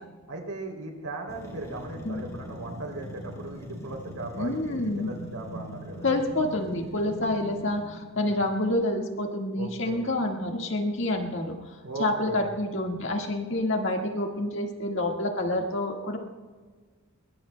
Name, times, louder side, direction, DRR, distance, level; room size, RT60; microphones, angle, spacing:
voice 1, 0.3-6.1 8.1-8.4 9.5-10.1 11.8-12.5, right 2 dB, 85° right, 1 dB, 3.2 m, -38 dB
sound 1, 1.3-8.1, right 1 dB, 15° left, 2.5 m, -41 dB
voice 2, 4.4-5.1 6.0-11.6 12.0-16.2, left 1 dB, 55° left, 2 dB, 1.8 m, -28 dB
22.0 x 21.0 x 2.3 m, 1.5 s
head